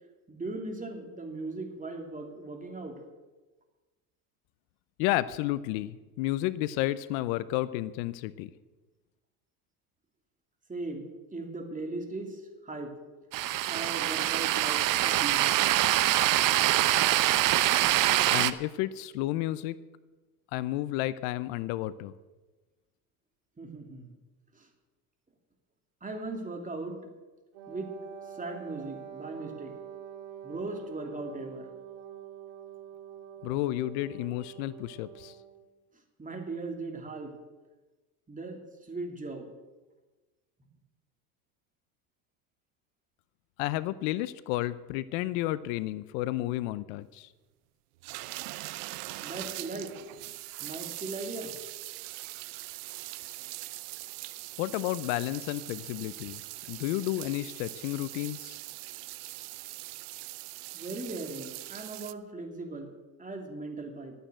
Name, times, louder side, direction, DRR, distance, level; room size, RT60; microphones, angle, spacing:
voice 1, 0.3-3.0 10.7-11.0 11.3-12.9 13.7-15.7 23.6-24.1 24.5-24.7 26.0-27.0 27.7-27.9 28.3-29.7 30.4-31.7 36.2-37.3 38.3-39.5 49.2-49.9 50.6-51.5 60.7-62.9 63.2-64.1, right 2 dB, 15° right, 3 dB, 2.9 m, -38 dB
voice 2, 5.0-8.5 18.3-19.8 20.5-22.1 33.4-35.4 43.6-47.3 54.6-56.4 56.7-58.6, left 16 dB, 70° left, 17 dB, 0.7 m, -31 dB
sound 1, 13.3-18.5, right 14 dB, 45° right, 0.7 m, -24 dB
Wind instrument woodwind instrument, 27.5-35.6, right 9 dB, 65° right, 2.6 m, -46 dB
sound 2, 48.0-62.1, right 20 dB, 80° right, 0.7 m, -42 dB
12.5 x 9.1 x 8.0 m, 1.2 s
supercardioid pair, 95°, 44 cm